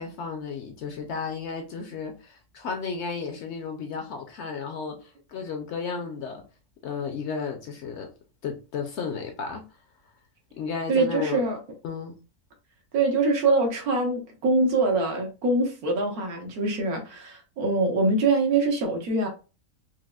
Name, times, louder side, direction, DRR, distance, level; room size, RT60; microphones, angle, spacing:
voice 1, 0.0-6.4 6.8-8.1 8.4-9.6 10.5-11.4 11.8-12.1, left 5 dB, 65° left, 0.7 m, -33 dB
voice 2, 10.9-11.6 12.9-19.3, right 3 dB, 80° right, 1.4 m, -24 dB
4.7 x 2.0 x 2.3 m
omnidirectional pair, 1.6 m